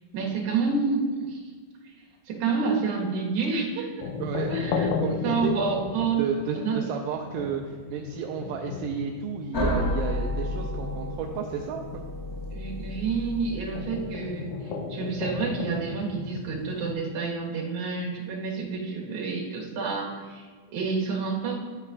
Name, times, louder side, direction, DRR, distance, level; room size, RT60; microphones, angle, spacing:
voice 1, 0.1-1.4 1.8-1.9 2.3-4.1 4.5-6.3 6.5-6.9 12.5-21.6, right 4 dB, 65° right, -3 dB, 2.8 m, -29 dB
sound 1, 4.0-16.9, left 5 dB, 85° left, 2.3 m, -35 dB
voice 2, 4.2-4.5 5.0-5.6 6.2-12.0, right 8 dB, 85° right, 2 dB, 2.2 m, -32 dB
sound 2, 9.5-14.2, left 1 dB, 55° left, 0.9 m, -31 dB
11.5 x 8.7 x 2.5 m, 1.5 s
omnidirectional pair, 3.9 m